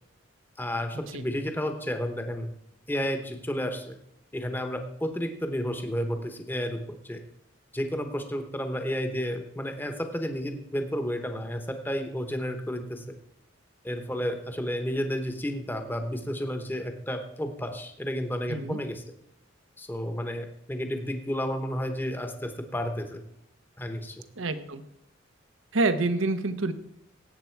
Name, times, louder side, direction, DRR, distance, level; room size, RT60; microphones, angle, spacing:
voice 1, 0.6-2.5 2.9-4.0 4.3-7.2 7.7-13.0 13.8-19.0 19.8-23.2 23.8-24.2, equal, 10° left, 6 dB, 1.0 m, -31 dB
voice 2, 18.5-18.8 24.4-24.8 25.7-26.7, right 2 dB, 80° right, 11 dB, 1.0 m, -27 dB
17.5 x 8.1 x 4.6 m, 0.75 s
head